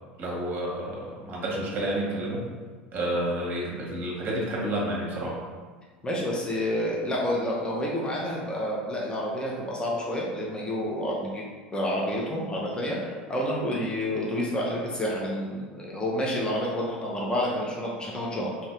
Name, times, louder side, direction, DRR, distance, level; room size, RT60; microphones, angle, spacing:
voice 1, 0.2-2.5 2.9-5.4, right 1 dB, 35° right, -3 dB, 1.0 m, -30 dB
voice 2, 6.0-11.4 11.7-18.5, left 1 dB, 15° left, -4 dB, 0.7 m, -29 dB
2.8 x 2.6 x 3.3 m, 1.5 s
figure-of-eight pair, 75°, 6 cm